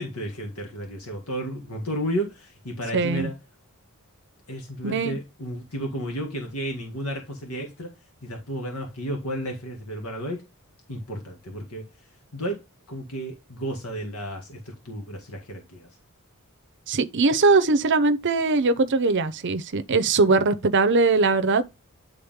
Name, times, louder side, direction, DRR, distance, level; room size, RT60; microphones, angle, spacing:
voice 1, 0.0-3.3 4.5-7.9 8.2-10.4 10.9-11.8 12.3-15.9, equal, 75° left, 1.9 m, -32 dB
voice 2, 2.9-3.3 4.8-5.2 16.9-21.6, right 3 dB, 55° right, 0.7 m, -21 dB
9.6 x 3.7 x 3.6 m
head